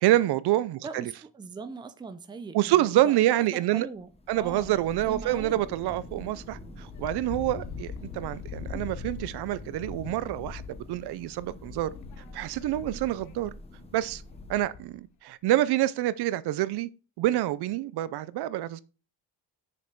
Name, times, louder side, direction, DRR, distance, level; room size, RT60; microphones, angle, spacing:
voice 1, 0.0-1.1 2.5-3.9 4.3-10.6 10.9-11.9 12.3-13.5 13.9-14.2 14.5-16.9 17.2-18.8, right 14 dB, 65° right, 0.6 m, -27 dB
voice 2, 0.8-3.5 3.7-4.1 4.3-4.7 5.0-5.6, right 4 dB, 10° right, 0.5 m, -40 dB
Thunder, 4.0-15.0, left 1 dB, 15° left, 1.0 m, -46 dB
Wind, 6.8-15.0, left 7 dB, 45° left, 0.8 m, -42 dB
6.7 x 5.3 x 6.0 m
cardioid pair, 180°, 42 cm